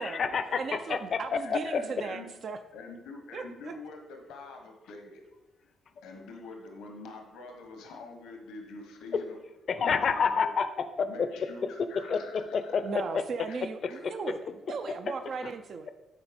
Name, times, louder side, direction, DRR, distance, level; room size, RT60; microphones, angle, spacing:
voice 1, 0.0-1.8 9.1-9.2 9.7-11.3 12.1-13.0 15.4-15.5, left 6 dB, 55° left, 11 dB, 0.6 m, -29 dB
voice 2, 0.6-2.6 3.3-3.7 12.8-15.9, right 5 dB, 55° right, 8 dB, 0.5 m, -37 dB
voice 3, 1.4-2.3 2.7-5.2 6.0-9.4 9.8-10.6 11.0-12.8 13.5-13.6 13.9-14.0, left 3 dB, 90° left, 3 dB, 1.2 m, -46 dB
9.8 x 4.1 x 5.2 m, 1.1 s
cardioid pair, 90°, 0 cm